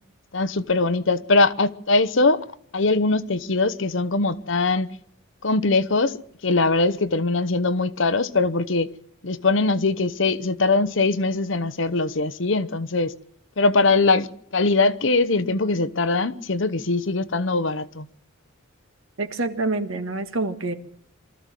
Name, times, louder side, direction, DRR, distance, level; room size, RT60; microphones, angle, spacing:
voice 1, 0.3-2.4 2.7-4.9 5.4-8.9 9.2-13.1 13.6-14.3 14.5-18.1, left 3 dB, 60° left, 0.9 m, -21 dB
voice 2, 19.2-20.7, right 3 dB, 75° right, 1.9 m, -26 dB
24.0 x 14.0 x 7.6 m
head